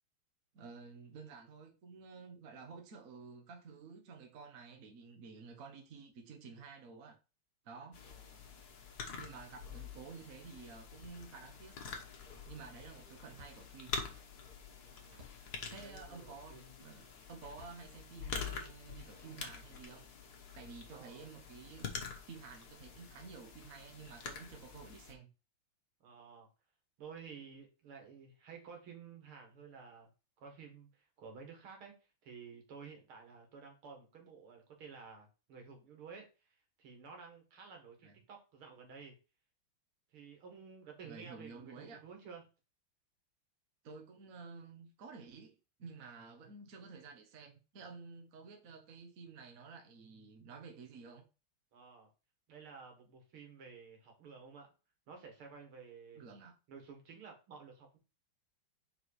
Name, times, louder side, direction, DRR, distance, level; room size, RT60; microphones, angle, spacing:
voice 1, 0.5-7.2 7.6-8.0 9.1-11.8 12.5-13.9 15.7-20.1 20.5-25.3 38.0-38.1 41.0-42.0 43.8-51.2 56.1-56.5, right 5 dB, 45° right, 1.4 m, -52 dB
sound 1, 7.9-25.1, left 5 dB, 50° left, 1.5 m, -47 dB
voice 2, 8.0-8.5 14.8-15.3 15.8-16.7 20.9-21.2 26.0-26.5 27.0-30.1 30.4-31.9 32.2-39.1 40.1-42.4 51.7-52.1 52.5-54.7 55.1-56.3 56.7-58.0, right 5 dB, 80° right, 2.6 m, -53 dB
Slam, 11.7-12.6 12.9-14.5 15.1-15.5 16.3-16.7 17.4-18.5 19.1-19.4, left 1 dB, 60° right, 2.3 m, -63 dB
4.9 x 4.8 x 4.8 m
omnidirectional pair, 2.3 m